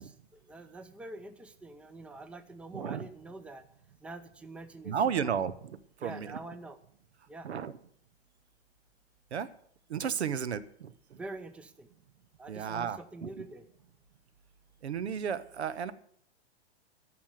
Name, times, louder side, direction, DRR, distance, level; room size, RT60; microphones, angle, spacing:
voice 1, 0.0-3.6 4.0-5.4 6.0-6.8 7.3-7.5 11.1-11.9 12.4-13.7, right 2 dB, 5° right, 11 dB, 0.7 m, -46 dB
voice 2, 2.7-3.1 4.8-6.3 7.4-7.7 9.3-9.5 9.9-10.9 12.5-13.3 14.8-15.9, right 7 dB, 75° right, 15 dB, 1.0 m, -33 dB
14.0 x 6.0 x 9.1 m, 0.62 s
figure-of-eight pair, 110°, 33 cm